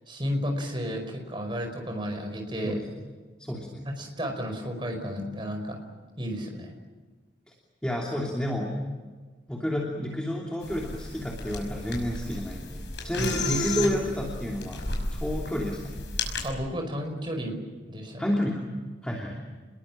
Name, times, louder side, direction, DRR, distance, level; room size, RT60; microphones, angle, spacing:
voice 1, 0.1-2.8 4.0-5.8 6.2-6.7 13.2-13.3 16.4-17.6 17.9-18.3, equal, 25° right, 4 dB, 5.1 m, -32 dB
voice 2, 3.4-3.8 7.5-7.6 7.8-8.7 9.5-14.9 15.1-16.0 18.2-18.6 19.0-19.4, equal, 5° left, -2 dB, 3.0 m, -30 dB
sound 1, 10.6-16.5, left 2 dB, 70° left, 5.7 m, -33 dB
28.5 x 22.0 x 7.6 m, 1.4 s
head